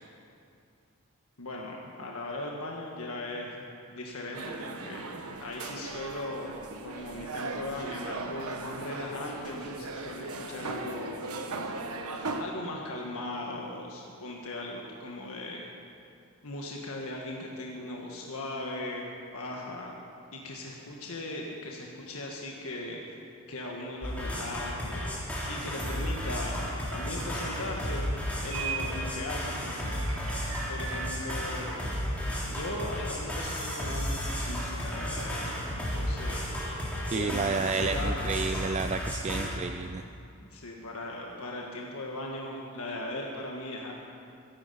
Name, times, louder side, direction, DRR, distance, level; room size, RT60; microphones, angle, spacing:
voice 1, 1.4-11.1 12.1-15.7 16.4-19.9 20.3-23.2 23.5-25.2 25.5-28.0 28.4-29.8 30.7-31.9 32.4-36.4 37.1-38.6 39.3-39.6 40.4-44.0, left 2 dB, 80° left, -1 dB, 1.6 m, -38 dB
sound 1, 4.3-12.4, right 3 dB, 90° right, 1.2 m, -38 dB
sound 2, 24.0-39.5, equal, 5° left, 3.0 m, -33 dB
sound 3, 28.5-29.0 29.4-31.3, right 7 dB, 70° right, 1.9 m, -38 dB
voice 2, 37.1-40.0, right 4 dB, 30° right, 8 dB, 0.3 m, -31 dB
22.0 x 11.0 x 5.6 m, 2.4 s
head